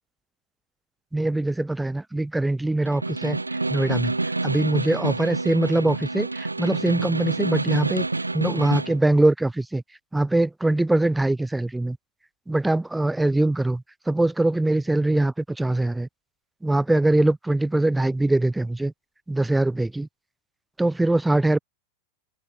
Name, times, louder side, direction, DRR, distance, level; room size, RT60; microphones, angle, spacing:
voice 1, 1.1-3.4 3.7-4.1 4.4-8.1 8.3-9.8 10.1-12.0 12.5-16.1 16.6-18.9 19.3-20.1 20.8-21.6, right 2 dB, 5° right, 0.8 m, -22 dB
Snare drum, 2.9-9.0, right 2 dB, 80° right, 1.4 m, -28 dB
open air
figure-of-eight pair, 90°, 0 cm